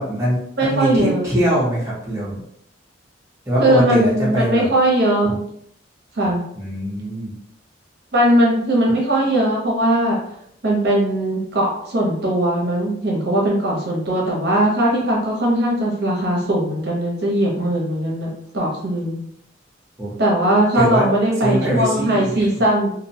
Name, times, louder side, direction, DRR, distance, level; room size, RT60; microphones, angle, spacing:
voice 1, 0.0-2.4 3.5-4.7 5.2-5.4 6.5-7.3 20.0-20.1 20.7-21.1 21.4-22.5, right 1 dB, 15° right, -7 dB, 0.7 m, -22 dB
voice 2, 0.6-1.2 3.6-5.4 6.2-6.4 8.1-10.2 10.6-19.2 20.2-22.9, right 1 dB, 55° right, -3 dB, 0.7 m, -19 dB
2.5 x 2.1 x 2.7 m, 0.70 s
head